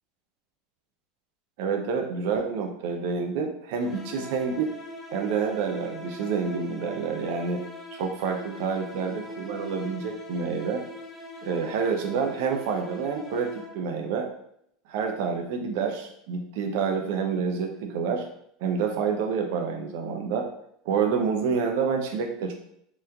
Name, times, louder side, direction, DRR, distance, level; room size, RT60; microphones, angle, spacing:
voice 1, 1.6-4.7 5.1-7.6 7.9-10.8 11.4-14.3 14.9-18.3 18.6-20.5 20.9-22.5, right 5 dB, 70° right, 3 dB, 0.5 m, -28 dB
sound 1, 3.8-14.0, left 2 dB, 15° left, 0.7 m, -42 dB
3.4 x 3.0 x 2.2 m, 0.71 s
supercardioid pair, 115°, 0 cm